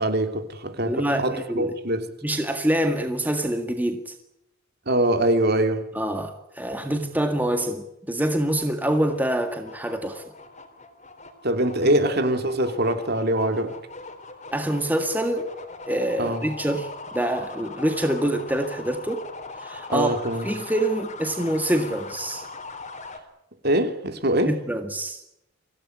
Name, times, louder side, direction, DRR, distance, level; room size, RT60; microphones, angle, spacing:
voice 1, 0.0-2.1 4.9-5.9 11.4-13.7 16.2-16.4 19.9-20.4 23.6-24.5, right 1 dB, 45° right, 3.0 m, -23 dB
voice 2, 0.8-1.7 2.2-4.2 5.9-10.2 11.8-12.0 14.5-15.5 15.9-19.3 19.6-22.5 24.5-25.2, right 1 dB, 10° right, 1.8 m, -26 dB
sound 1, 8.2-23.2, left 3 dB, 30° left, 3.6 m, -41 dB
25.0 x 17.0 x 9.7 m
head